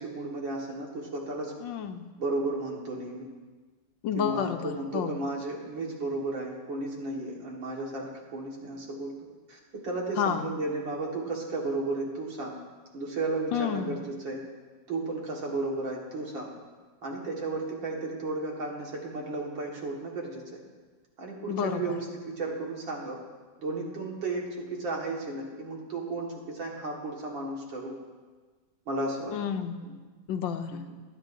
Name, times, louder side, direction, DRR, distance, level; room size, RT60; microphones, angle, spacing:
voice 1, 0.0-1.5 2.2-3.3 4.1-9.1 9.5-12.6 12.9-14.4 14.9-16.5 17.0-20.6 21.2-23.2 23.6-28.0 28.9-29.4 29.8-29.9 30.9-31.0, right 2 dB, 75° right, -2 dB, 2.6 m, -34 dB
voice 2, 1.6-2.0 4.0-5.2 10.2-10.4 13.5-14.0 21.5-22.0 29.3-29.8 30.3-30.9, left 8 dB, 80° left, 8 dB, 1.3 m, -30 dB
24.0 x 9.0 x 2.7 m, 1.4 s
omnidirectional pair, 2.1 m